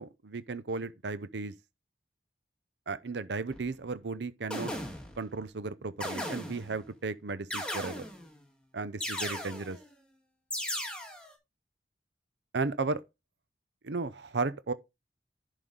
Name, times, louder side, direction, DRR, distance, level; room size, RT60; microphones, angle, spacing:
voice 1, 0.0-1.5 2.9-4.7 5.2-8.1 8.7-9.8 12.5-13.0 13.8-14.7, right 3 dB, 80° right, 0.6 m, -35 dB
sound 1, 3.5-3.7 4.5-5.3 6.0-6.8 7.5-8.3 9.0-9.8 10.5-11.3, left 1 dB, 5° left, 2.1 m, -37 dB
11.0 x 5.0 x 3.9 m
head